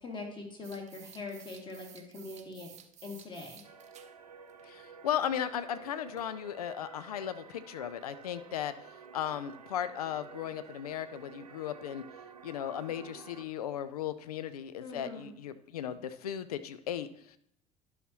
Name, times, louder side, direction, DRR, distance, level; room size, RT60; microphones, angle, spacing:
voice 1, 0.0-2.7 3.0-3.6 14.8-15.3, left 3 dB, 25° left, 1 dB, 2.1 m, -42 dB
sound 1, 0.6-4.1 4.5-4.6 6.2-6.3 7.5-7.6 10.7-10.8 11.0-11.1 11.6-11.7 12.2-12.3 12.8-12.9, right 9 dB, 35° right, 0.8 m, -54 dB
sound 2, 3.6-13.5, right 6 dB, 85° right, 0.5 m, -51 dB
voice 2, 4.6-12.0 12.4-17.4, left 10 dB, 75° left, 13 dB, 0.4 m, -36 dB
12.0 x 5.8 x 2.9 m, 0.72 s
figure-of-eight pair, 65°, 20 cm